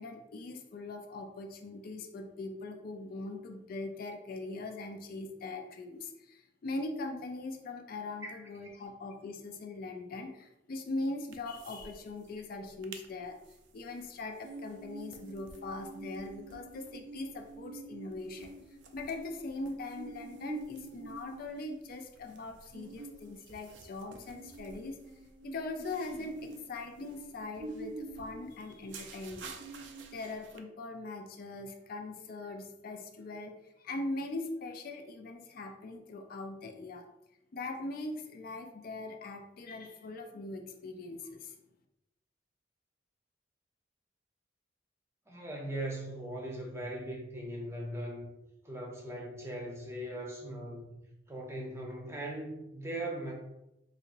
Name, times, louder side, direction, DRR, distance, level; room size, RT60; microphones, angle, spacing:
voice 1, 0.0-13.4 13.7-18.5 18.9-25.0 25.4-37.1 37.5-41.6, left 2 dB, 55° left, 5 dB, 0.4 m, -41 dB
sound 1, 11.3-11.9 12.2-12.3 12.6-13.0 13.5-30.6, right 3 dB, 85° right, 0.4 m, -47 dB
voice 2, 45.3-48.3 48.6-50.9 51.3-53.3, right 1 dB, 15° right, -1 dB, 0.7 m, -39 dB
4.1 x 2.8 x 2.5 m, 0.89 s
head